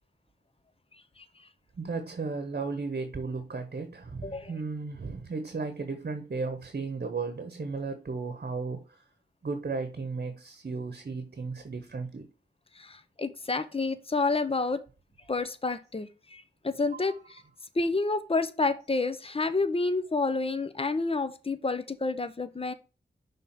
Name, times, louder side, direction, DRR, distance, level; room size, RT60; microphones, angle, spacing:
voice 1, 1.8-9.0 9.4-12.3 16.9-17.1, right 4 dB, 55° right, 1.0 m, -35 dB
voice 2, 12.8-14.8 15.3-17.4 17.8-22.7, left 3 dB, 30° left, 0.8 m, -29 dB
5.8 x 3.6 x 5.6 m
cardioid pair, 50°, 18 cm